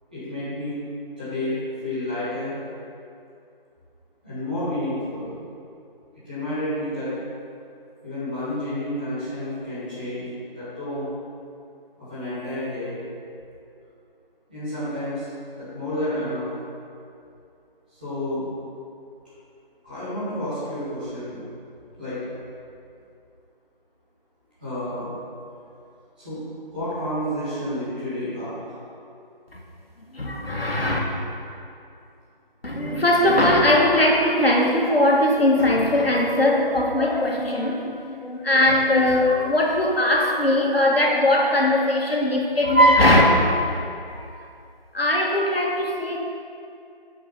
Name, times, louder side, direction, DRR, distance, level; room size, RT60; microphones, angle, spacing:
voice 1, 0.1-0.7 1.2-1.5 1.8-2.5 4.2-5.5 6.2-7.1 8.0-11.1 12.0-13.0 14.5-15.3 15.6-16.4 17.9-18.4 19.8-21.4 22.0-22.2 24.6-25.1 26.2-26.4 26.7-28.8, left 1 dB, 10° right, -17 dB, 1.6 m, -30 dB
voice 2, 30.1-31.0 32.6-43.2 44.1-44.3 44.9-46.2, left 1 dB, 80° left, -1 dB, 1.9 m, -20 dB
9.4 x 5.6 x 5.6 m, 2.5 s
figure-of-eight pair, 170°, 29 cm